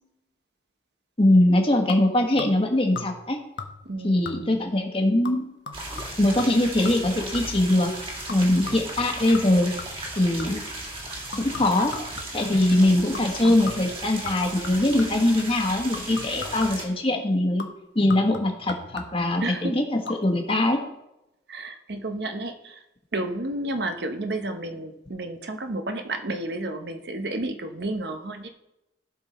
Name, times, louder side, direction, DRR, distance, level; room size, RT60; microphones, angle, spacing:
voice 1, 1.2-3.4 4.0-5.5 6.2-7.9 8.3-9.7 10.2-10.6 11.4-12.0 12.3-17.6 17.9-20.8, left 1 dB, 30° left, 3 dB, 1.3 m, -22 dB
sound 1, 1.9-2.7 3.0-3.3 3.6-4.0 4.3-4.7 5.2-7.7 8.3-10.8 11.3-12.6 13.1-13.4 13.7-15.3 15.9-17.0 17.6-19.4 19.9-20.2 20.5-20.6, left 4 dB, 80° left, 1.0 m, -39 dB
voice 2, 3.8-4.6 19.4-19.7 21.5-22.8 23.1-28.5, right 2 dB, 65° right, 7 dB, 0.9 m, -31 dB
sound 2, 5.7-16.8, right 1 dB, 30° right, 2.0 m, -36 dB
15.0 x 5.6 x 4.2 m, 0.91 s
head